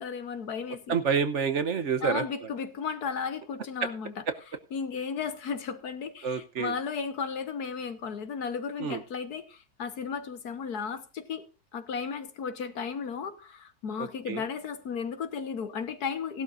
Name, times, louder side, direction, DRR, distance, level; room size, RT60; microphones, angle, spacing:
voice 1, 0.0-1.0 2.0-4.2 4.7-11.4 11.7-16.4, left 6 dB, 80° left, 1.8 m, -34 dB
voice 2, 0.9-2.2 6.2-6.7 8.8-9.0 14.0-14.4, right 6 dB, 55° right, 1.2 m, -28 dB
17.0 x 12.0 x 2.6 m
omnidirectional pair, 1.6 m